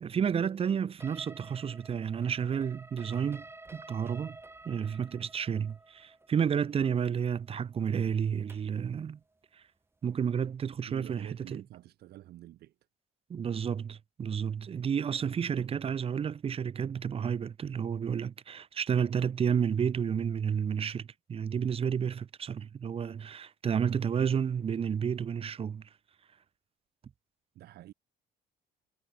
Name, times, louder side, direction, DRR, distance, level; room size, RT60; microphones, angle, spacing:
voice 1, 0.0-3.5 3.7-4.4 4.6-9.2 9.5-9.6 10.0-11.6 13.3-25.8, right 7 dB, 35° right, 0.9 m, -31 dB
sound 1, 1.0-8.8, right 2 dB, 15° right, 4.0 m, -51 dB
voice 2, 10.9-12.8 27.5-27.9, right 14 dB, 70° right, 2.7 m, -48 dB
cardioid pair, 110°, 17 cm